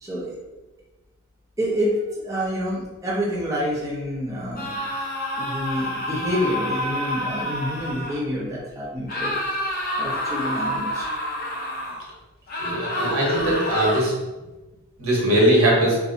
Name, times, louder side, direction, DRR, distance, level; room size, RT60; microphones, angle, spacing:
voice 1, 0.0-0.3 1.6-4.8 5.4-9.7 10.0-11.1 13.1-13.2, equal, 15° right, -8 dB, 0.7 m, -28 dB
sound 1, 4.6-8.2 9.1-12.0 12.5-14.0, equal, 40° left, 0.7 m, -28 dB
voice 2, 12.6-14.1 15.0-16.0, right 1 dB, 75° right, -4 dB, 1.0 m, -20 dB
2.6 x 2.3 x 3.8 m, 1.1 s
head